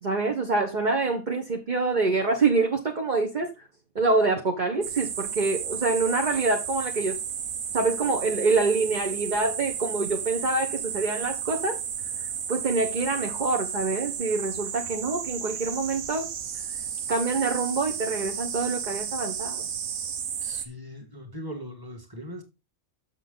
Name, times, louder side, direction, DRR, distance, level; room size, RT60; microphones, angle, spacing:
voice 1, 0.0-3.5 3.9-7.2 7.7-11.8 12.2-16.3 17.1-19.7, right 3 dB, 35° right, 1.3 m, -26 dB
sound 1, 4.8-20.7, right 8 dB, 85° right, 1.4 m, -33 dB
voice 2, 20.4-22.4, equal, 15° right, 2.1 m, -40 dB
7.4 x 7.0 x 3.9 m
omnidirectional pair, 1.5 m